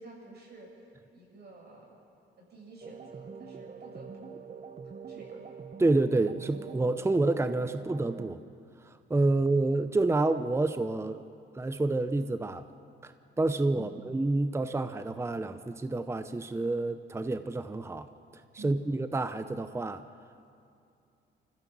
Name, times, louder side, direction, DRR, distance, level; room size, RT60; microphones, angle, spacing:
voice 1, 0.0-2.0 2.4-4.5 4.8-5.4 9.4-9.5 13.7-14.0 18.6-18.8, right 1 dB, 55° right, -1 dB, 7.0 m, -51 dB
sound 1, 2.8-8.4, right 5 dB, 35° right, 1.0 m, -45 dB
voice 2, 5.8-8.4 8.9-11.2 11.5-12.7 13.0-13.1 13.4-18.1 18.3-20.0, right 2 dB, 15° right, 10 dB, 0.7 m, -28 dB
25.5 x 15.0 x 7.1 m, 2.5 s
cardioid pair, 90°, 20 cm